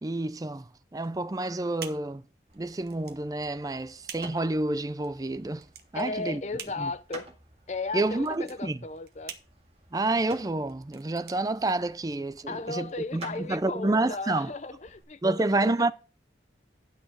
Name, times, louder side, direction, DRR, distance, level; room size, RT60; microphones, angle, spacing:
voice 1, 0.0-2.2 2.5-5.6 5.9-6.4 6.8-6.9 7.9-8.8 9.9-14.5 15.2-15.9, right 2 dB, 20° right, 0.4 m, -29 dB
sound 1, 0.9-12.3, right 8 dB, 60° right, 1.3 m, -48 dB
sound 2, 2.5-15.0, right 2 dB, 35° right, 1.9 m, -52 dB
voice 2, 5.9-7.3 7.7-9.3 12.5-15.9, left 3 dB, 40° left, 0.6 m, -35 dB
10.5 x 6.6 x 4.7 m
head